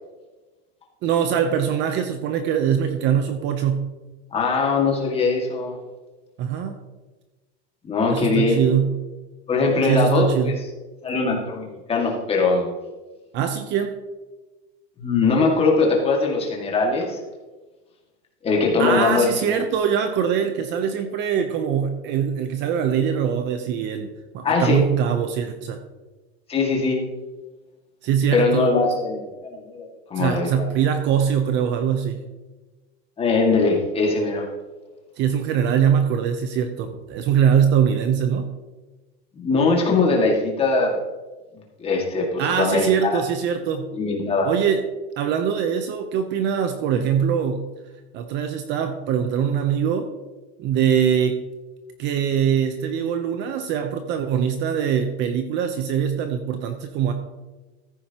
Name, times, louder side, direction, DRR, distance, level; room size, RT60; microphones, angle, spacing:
voice 1, 1.0-3.9 6.4-6.7 8.1-9.0 9.8-10.6 13.3-14.0 18.8-24.1 24.3-25.8 28.0-28.7 30.2-32.2 35.2-38.5 42.4-43.9 44.4-44.8 45.2-47.6 48.1-50.1 50.6-51.4 52.0-57.1, right 8 dB, 35° right, 7 dB, 0.7 m, -22 dB
voice 2, 4.3-5.8 7.8-8.6 9.5-10.5 11.0-12.7 15.0-17.2 18.4-19.6 24.4-24.8 26.5-27.0 28.3-30.7 33.2-34.5 39.3-41.0 41.8-43.2 43.9-44.5, left 3 dB, 15° left, 0 dB, 1.9 m, -21 dB
14.5 x 9.3 x 2.9 m, 1.2 s
supercardioid pair, 155°, 33 cm